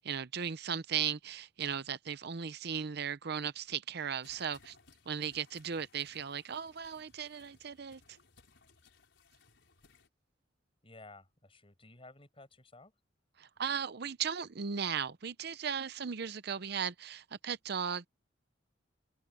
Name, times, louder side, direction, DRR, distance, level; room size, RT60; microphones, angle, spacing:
voice 1, 0.0-4.8 5.1-8.2 13.4-18.1, right 7 dB, 60° right, 0.7 m, -37 dB
sound 1, 4.2-10.1, left 4 dB, 75° left, 5.0 m, -64 dB
voice 2, 10.8-12.9, left 2 dB, 30° left, 5.9 m, -55 dB
head